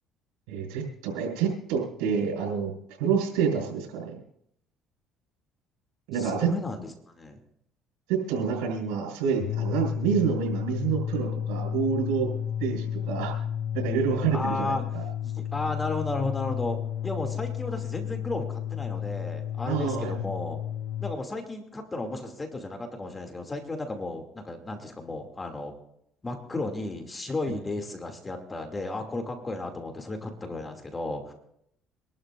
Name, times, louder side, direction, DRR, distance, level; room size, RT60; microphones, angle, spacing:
voice 1, 0.5-2.7 3.0-4.2 6.1-6.5 8.1-12.3 12.6-13.3 13.7-15.0 19.7-20.1, right 7 dB, 85° right, 0 dB, 5.7 m, -28 dB
voice 2, 6.1-7.4 14.3-14.8 15.2-20.6 21.0-25.7 26.2-31.3, left 2 dB, 20° left, 4 dB, 2.6 m, -34 dB
sound 1, 9.3-21.2, left 9 dB, 65° left, 0.5 m, -32 dB
26.0 x 12.5 x 2.6 m, 0.74 s
supercardioid pair, 85°, 0 cm